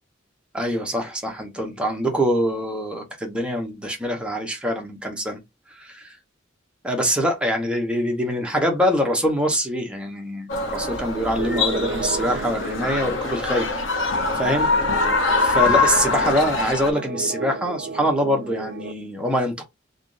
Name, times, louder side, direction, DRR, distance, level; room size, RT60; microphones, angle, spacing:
voice 1, 0.5-5.4 5.8-6.2 6.8-13.7 14.3-14.7 15.4-19.6, equal, 5° right, 1.1 m, -24 dB
sound 1, 10.5-16.9, left 3 dB, 85° left, 1.0 m, -23 dB
sound 2, 11.4-18.9, right 5 dB, 65° right, 0.4 m, -33 dB
4.1 x 3.5 x 2.6 m
head